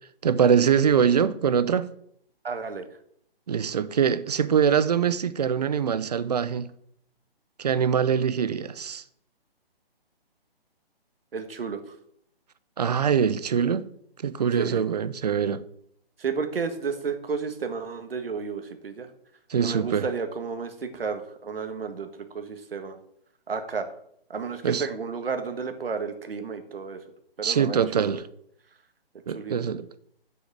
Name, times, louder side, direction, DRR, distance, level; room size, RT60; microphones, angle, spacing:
voice 1, 0.2-1.9 3.5-6.7 7.6-9.0 12.8-13.9 14.2-15.6 19.5-20.1 24.6-24.9 27.4-28.2 29.3-29.9, right 7 dB, 40° right, 0.6 m, -23 dB
voice 2, 2.4-2.9 11.3-12.0 14.5-14.8 16.2-19.1 19.6-23.0 23.5-23.9 24.3-27.0 27.4-28.2 29.3-29.5, right 5 dB, 65° right, 1.8 m, -32 dB
7.3 x 6.4 x 7.7 m
hypercardioid pair, 150°, 31 cm